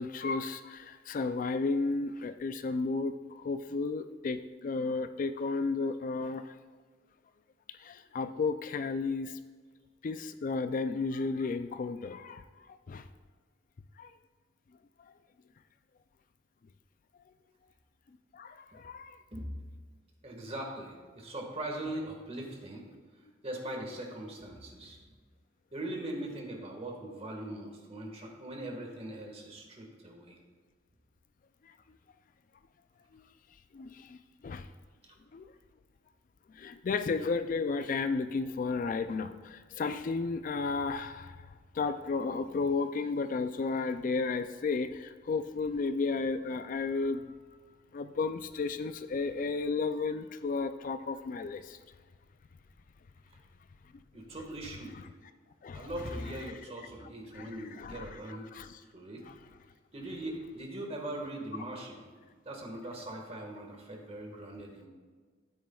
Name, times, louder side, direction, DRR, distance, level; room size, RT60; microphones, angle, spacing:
voice 1, 0.0-6.6 7.7-9.4 10.0-13.1 14.0-14.1 18.3-19.2 33.1-33.2 33.7-34.2 34.4-34.7 35.3-35.5 36.5-41.5 41.7-47.3 47.9-51.8 54.9-55.0 55.6-56.5 57.3-58.8 59.3-59.4, left 4 dB, 45° left, 11 dB, 0.3 m, -33 dB
voice 2, 20.2-22.8 23.4-25.0 25.7-30.4 54.1-55.0 55.7-58.5 58.9-59.2 59.9-62.1 62.4-64.9, right 1 dB, 30° right, 1 dB, 1.6 m, -40 dB
12.5 x 9.2 x 2.3 m, 1.5 s
head